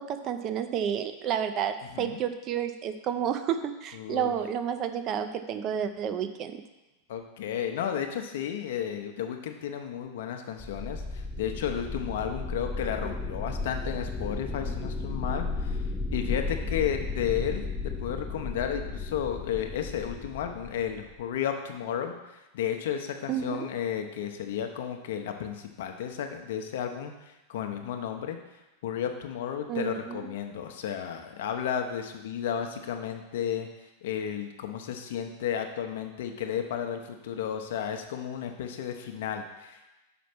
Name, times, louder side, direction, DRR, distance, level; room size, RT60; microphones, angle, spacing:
voice 1, 0.0-6.6 23.3-23.7 29.7-30.3, right 9 dB, 35° right, 9 dB, 0.6 m, -30 dB
voice 2, 3.9-4.3 7.1-15.8 16.1-28.4 28.8-33.7 34.0-39.9, left 9 dB, 55° left, 5 dB, 0.8 m, -33 dB
sound 1, 10.6-21.2, left 3 dB, 10° left, 0.7 m, -34 dB
6.0 x 5.1 x 5.9 m, 1.0 s
figure-of-eight pair, 90°, 0 cm